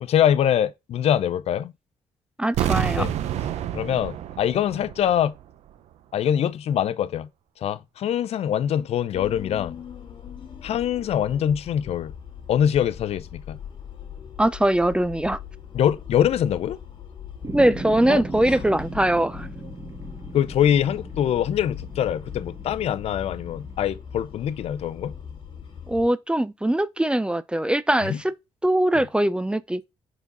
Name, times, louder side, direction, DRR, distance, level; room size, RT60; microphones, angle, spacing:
voice 1, 0.0-1.7 3.0-3.1 3.7-5.3 6.1-7.3 7.6-9.8 10.6-12.1 12.5-13.6 15.7-16.8 18.1-18.2 18.5-18.6 20.3-25.1 28.0-28.2 28.9-29.0, left 10 dB, 65° left, 0.6 m, -23 dB
voice 2, 2.4-3.1 14.4-15.4 17.5-19.5 25.9-28.3 28.6-29.8, right 1 dB, 10° right, 0.5 m, -22 dB
sound 1, 2.5-5.4 5.7-5.8, right 11 dB, 80° right, 0.7 m, -28 dB
sound 2, 9.1-26.1, left 8 dB, 50° left, 2.0 m, -40 dB
sound 3, 17.4-23.9, right 3 dB, 30° right, 1.2 m, -38 dB
4.9 x 4.0 x 5.4 m
cardioid pair, 80°, 11 cm